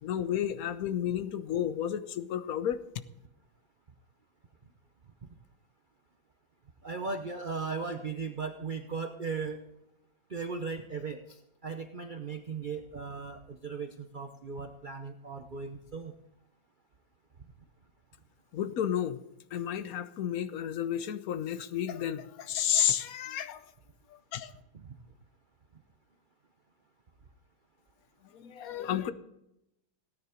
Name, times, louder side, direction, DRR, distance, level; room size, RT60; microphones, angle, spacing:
voice 1, 0.0-2.8 18.5-19.2 19.5-23.6 24.3-24.5 28.3-29.1, left 10 dB, 60° left, 12 dB, 1.0 m, -31 dB
voice 2, 6.8-9.6 10.3-16.1 24.7-25.0, right 4 dB, 55° right, 6 dB, 0.5 m, -37 dB
17.5 x 9.6 x 5.0 m, 0.83 s
omnidirectional pair, 2.2 m